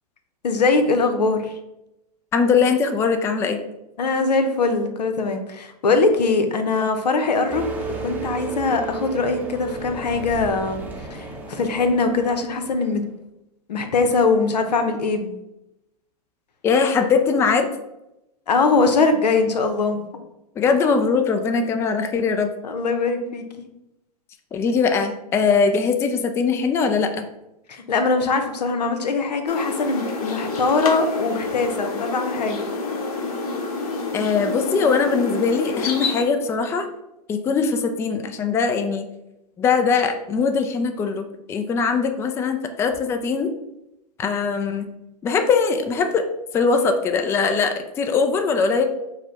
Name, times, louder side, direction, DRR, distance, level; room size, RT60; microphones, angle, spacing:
voice 1, 0.4-1.6 4.0-7.6 8.0-13.0 13.7-15.4 18.5-20.1 21.5-21.7 22.6-23.6 27.7-32.7, left 3 dB, 85° left, 7 dB, 0.7 m, -22 dB
voice 2, 2.3-3.6 16.6-17.7 20.6-22.5 24.5-27.2 34.1-36.9 37.3-39.0 39.6-43.5 44.2-44.9 45.2-46.2 46.5-48.8, left 5 dB, 15° left, 7 dB, 0.3 m, -21 dB
sound 1, 7.5-13.1, right 3 dB, 10° right, 0.7 m, -34 dB
sound 2, 29.5-36.2, left 3 dB, 60° left, 1.0 m, -28 dB
4.7 x 2.2 x 4.6 m, 0.90 s
hypercardioid pair, 120°, 20 cm